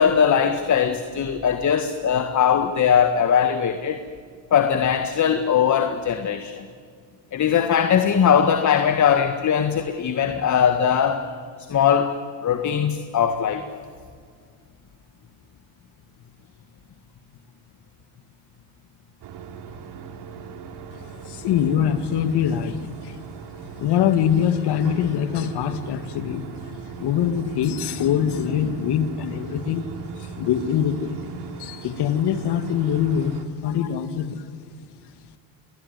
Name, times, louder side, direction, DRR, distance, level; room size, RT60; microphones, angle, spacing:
voice 1, 0.0-4.0 4.5-6.7 7.3-11.2 11.7-13.7, left 8 dB, 40° left, 8 dB, 1.8 m, -20 dB
sound 1, 19.2-33.4, right 6 dB, 65° right, 3.5 m, -39 dB
voice 2, 21.0-23.2 23.8-29.9 30.2-31.2 31.6-34.4, left 9 dB, 65° left, 10 dB, 2.4 m, -24 dB
27.0 x 20.5 x 9.7 m, 2.1 s
supercardioid pair, 100°, 44 cm